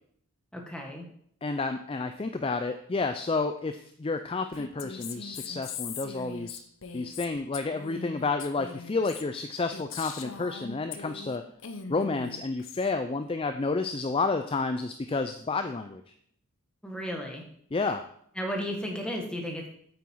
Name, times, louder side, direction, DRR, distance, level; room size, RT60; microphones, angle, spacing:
voice 1, 0.5-1.0 16.8-17.4 18.3-19.7, equal, 5° left, 1 dB, 1.5 m, -34 dB
voice 2, 1.4-6.6 6.9-11.4 11.9-16.1 17.7-18.0, left 3 dB, 25° left, 8 dB, 0.4 m, -30 dB
Female speech woman speaking, 4.5-11.4 11.6-12.9, left 6 dB, 60° left, 0.7 m, -41 dB
8.4 x 8.1 x 4.6 m, 0.66 s
head